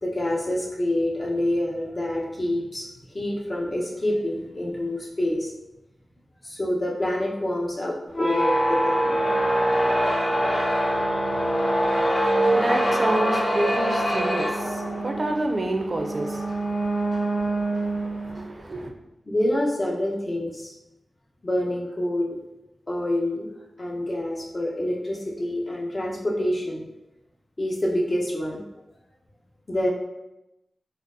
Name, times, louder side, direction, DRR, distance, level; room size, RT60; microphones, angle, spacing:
voice 1, 0.0-2.9 3.1-5.5 6.4-9.2 19.3-20.7 21.4-22.4 22.9-23.5 23.8-26.8 27.6-28.6 29.7-29.9, left 1 dB, 40° left, -3 dB, 0.8 m, -27 dB
sound 1, 8.1-18.4, right 1 dB, 60° left, 1.1 m, -24 dB
voice 2, 11.3-18.9, right 1 dB, 45° right, 3 dB, 0.4 m, -30 dB
3.9 x 2.0 x 2.6 m, 0.92 s
cardioid pair, 55°, 0 cm